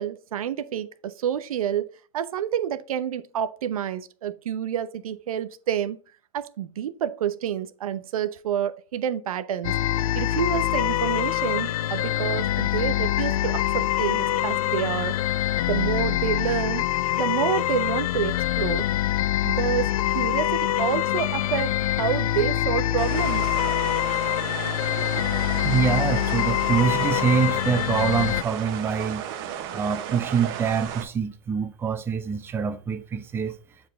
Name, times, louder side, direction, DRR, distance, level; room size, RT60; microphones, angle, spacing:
voice 1, 0.0-1.9 2.1-6.0 6.3-9.8 10.1-15.2 15.7-16.8 17.2-18.9 19.4-23.6 25.0-25.2, right 9 dB, 85° right, 0.8 m, -28 dB
sound 1, 9.6-28.4, left 13 dB, 75° left, 0.4 m, -25 dB
sound 2, 23.0-31.0, right 9 dB, 45° right, 1.3 m, -34 dB
voice 2, 25.3-29.2 29.7-33.6, right 6 dB, 15° right, 0.6 m, -25 dB
7.5 x 4.6 x 3.9 m
supercardioid pair, 150°, 18 cm